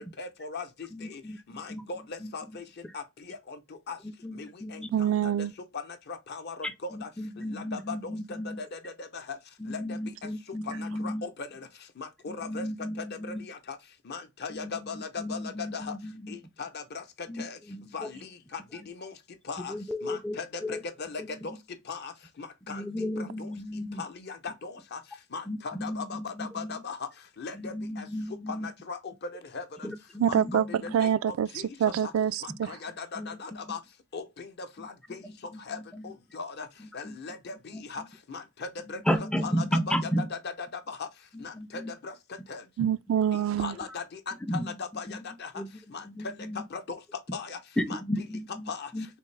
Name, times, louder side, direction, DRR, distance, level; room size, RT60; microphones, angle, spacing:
voice 1, 0.2-1.2 1.5-2.6 2.9-3.6 3.9-4.0 4.3-5.3 6.1-6.6 6.8-7.1 7.5-8.1 8.6-9.4 9.7-10.0 10.8-11.6 12.0-12.6 13.4-13.8 14.1-15.9 16.3-17.0 17.4-17.6 17.9-19.1 19.5-19.7 20.0-21.5 21.9-22.1 22.4-22.8 23.2-23.5 24.0-25.0 25.3-27.1 27.4-28.1 28.6-29.1 29.5-29.9 30.2-31.6 32.0-32.1 32.7-33.8 34.1-35.2 35.7-35.8 36.0-36.7 36.9-38.0 38.3-41.1 41.4-42.1 42.5-42.6 43.6-44.3 44.8-45.5 45.9-46.0 46.7-47.0 47.3-47.6 47.9-48.0 48.7-48.9, left 4 dB, 55° left, 0.6 m, -39 dB
voice 2, 0.9-1.8 2.2-2.3 4.2-4.9 5.2-5.3 6.6-8.6 9.6-11.2 12.4-13.4 14.5-14.7 15.2-16.3 17.3-18.1 19.7-20.8 22.7-24.0 25.5-26.8 27.6-28.7 29.8-30.7 33.2-33.3 35.9-36.0 37.0-37.2 37.7-37.8 39.1-40.3 41.3-41.9 42.8-42.9 44.5-44.7 45.6-45.7 46.1-46.6 47.8-48.6 48.9-49.1, equal, 5° left, 0.4 m, -34 dB
voice 3, 4.9-5.5 30.2-30.6 30.9-31.5 31.8-32.7 42.8-43.8, right 9 dB, 80° right, 0.3 m, -25 dB
3.5 x 2.6 x 3.1 m
head